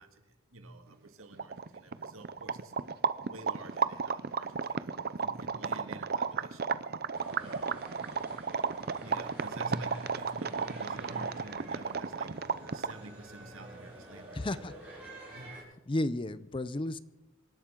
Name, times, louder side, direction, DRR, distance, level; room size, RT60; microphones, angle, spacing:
voice 1, 0.0-2.7 3.2-6.8 7.4-7.9 8.2-8.4 9.0-12.4 12.7-14.6 15.3-15.8, right 2 dB, 80° right, 2.1 m, -49 dB
sound 1, 1.1-1.2 1.3-13.1, right 5 dB, 50° right, 0.6 m, -33 dB
sound 2, 7.1-15.6, right 1 dB, 10° right, 6.4 m, -49 dB
voice 2, 14.3-14.7 15.9-17.0, left 1 dB, 25° left, 0.5 m, -32 dB
26.5 x 12.0 x 3.8 m
head